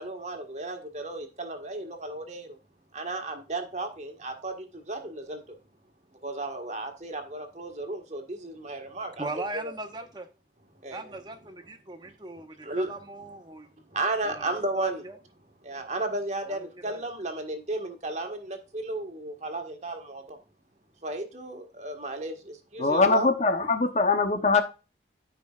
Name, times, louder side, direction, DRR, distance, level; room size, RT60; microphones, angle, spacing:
voice 1, 0.0-2.6 2.9-5.6 6.2-9.7 10.8-11.2 12.0-13.3 13.9-15.0 15.6-20.4 21.0-23.3, right 2 dB, 40° right, 1.6 m, -34 dB
voice 2, 9.2-10.3 10.9-13.7 14.3-15.2 16.5-16.6 16.8-17.0, right 2 dB, 25° right, 1.1 m, -39 dB
voice 3, 22.8-24.6, left 3 dB, 40° left, 0.8 m, -22 dB
13.5 x 5.2 x 2.4 m
head